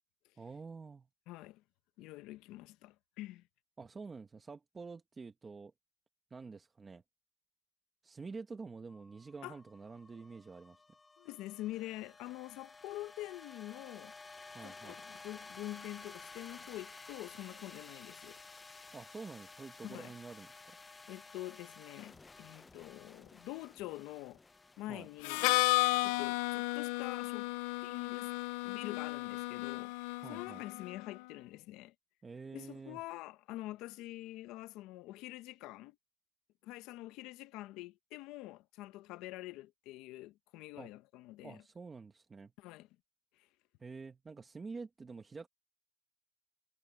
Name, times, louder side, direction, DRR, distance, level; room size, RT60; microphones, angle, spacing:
voice 1, 0.4-1.1 3.8-5.7 6.3-7.0 8.0-10.8 14.5-15.0 18.9-20.8 24.9-25.1 30.2-30.6 32.2-33.0 40.8-40.9 41.4-42.5 43.8-45.5, right 4 dB, 20° right, 1.1 m, -48 dB
voice 2, 1.3-1.6 2.0-3.4 9.4-9.5 11.2-14.2 14.6-18.4 19.8-20.1 21.1-24.4 24.8-25.5 26.0-27.5 27.8-28.3 28.6-29.9 30.3-31.9 32.5-36.0 36.6-41.6 42.6-42.9, left 17 dB, 65° left, 1.0 m, -46 dB
sound 1, 8.9-27.2, left 3 dB, 15° left, 0.6 m, -54 dB
Harmonica, 25.2-31.0, left 23 dB, 90° left, 0.4 m, -33 dB
cardioid pair, 150°, 0 cm